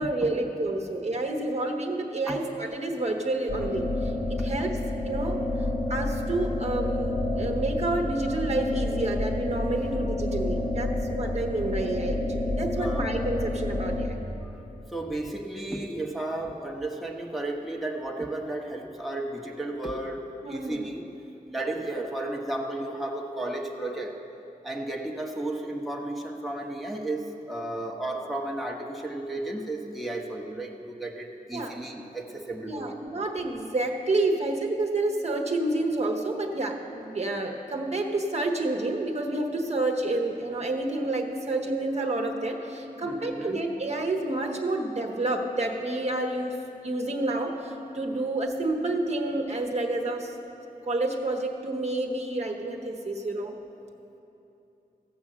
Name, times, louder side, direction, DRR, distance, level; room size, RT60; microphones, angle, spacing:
voice 1, 0.0-3.9 4.3-4.8 5.0-5.4 5.9-14.2 20.4-20.8 31.5-31.8 32.6-46.6 46.8-50.3 50.9-53.5, right 2 dB, 45° right, 2 dB, 1.0 m, -29 dB
sound 1, 3.5-14.1, left 2 dB, 85° left, 1.7 m, -29 dB
voice 2, 12.7-13.1 14.4-14.5 14.9-21.0 21.5-24.2 24.6-33.0 43.0-43.6, right 2 dB, ahead, 0 dB, 1.0 m, -33 dB
15.0 x 5.5 x 7.4 m, 2.9 s
wide cardioid pair, 80°, 15 cm